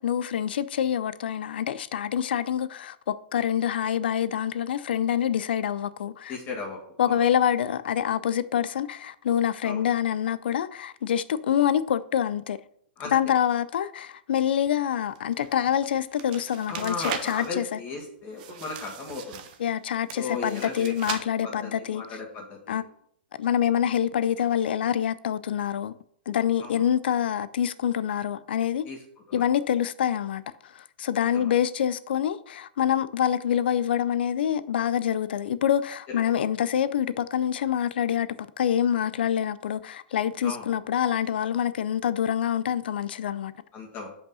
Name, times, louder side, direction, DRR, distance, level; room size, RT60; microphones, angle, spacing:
voice 1, 0.0-6.3 7.0-12.6 13.1-17.8 19.6-22.0 22.7-22.8 23.4-25.9 26.3-28.9 29.3-38.3 38.6-43.5, left 9 dB, 70° left, 0.5 m, -26 dB
voice 2, 6.3-7.2 9.6-9.8 13.0-13.2 16.7-19.5 20.1-20.9 21.4-22.8 26.6-26.8 28.9-29.0 29.3-29.5 31.3-31.5 36.1-36.5 40.4-40.7 43.7-44.1, left 4 dB, 30° left, 1.9 m, -36 dB
sound 1, 15.0-17.5 18.4-19.8 20.1-21.2, right 8 dB, 50° right, 1.0 m, -38 dB
5.6 x 5.2 x 5.5 m
hypercardioid pair, 125°, 6 cm